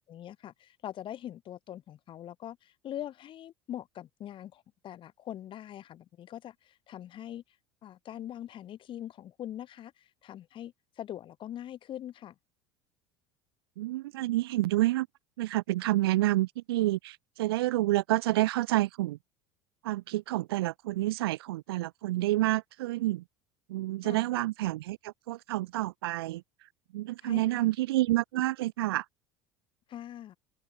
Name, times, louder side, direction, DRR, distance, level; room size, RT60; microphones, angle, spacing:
voice 1, 0.0-7.4 7.8-12.3 24.0-24.3 27.2-27.7 29.9-30.4, left 11 dB, 40° left, 1.3 m, -43 dB
voice 2, 13.8-15.1 15.4-19.2 19.8-23.2 23.7-26.4 26.9-29.1, right 17 dB, 65° right, 0.7 m, -29 dB
figure-of-eight pair, 70°, 14 cm